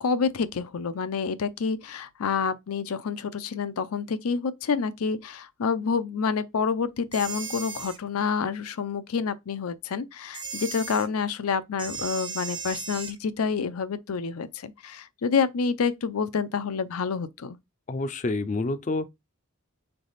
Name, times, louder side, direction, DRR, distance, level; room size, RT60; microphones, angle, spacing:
voice 1, 0.0-17.6, left 5 dB, 90° left, 0.5 m, -28 dB
sound 1, 7.1-8.0 10.3-11.1 11.8-13.2, right 5 dB, 20° right, 0.5 m, -36 dB
voice 2, 17.9-19.1, left 2 dB, 35° left, 0.4 m, -28 dB
3.8 x 3.4 x 4.0 m
head